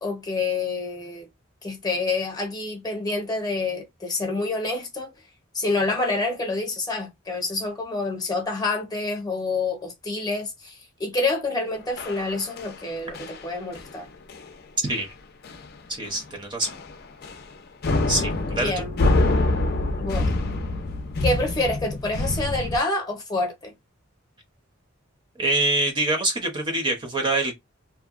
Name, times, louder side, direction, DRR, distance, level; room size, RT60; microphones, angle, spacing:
voice 1, 0.0-1.3 1.6-5.1 5.5-14.1 18.6-19.0 20.0-20.3 21.2-23.7, left 3 dB, 20° left, 0.7 m, -27 dB
sound 1, 12.0-12.8 13.1-13.5 13.7-14.0 14.3-14.5 14.9-15.0 15.4-15.8 16.0-16.2 16.6-17.5 17.8-22.8, left 2 dB, 55° left, 0.5 m, -26 dB
voice 2, 14.8-15.1 15.9-16.7 18.1-18.7 25.4-27.6, right 2 dB, 25° right, 0.6 m, -25 dB
2.7 x 2.2 x 2.4 m
head